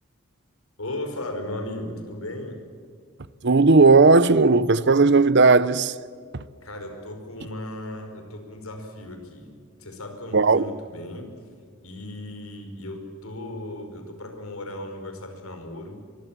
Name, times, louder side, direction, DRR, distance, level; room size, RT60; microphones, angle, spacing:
voice 1, 0.8-2.6 6.6-9.5 9.8-11.3 11.8-16.0, left 1 dB, 80° left, 5.1 m, -36 dB
voice 2, 3.4-5.9 10.3-10.7, right 3 dB, 55° right, 0.8 m, -16 dB
24.0 x 22.5 x 7.5 m
head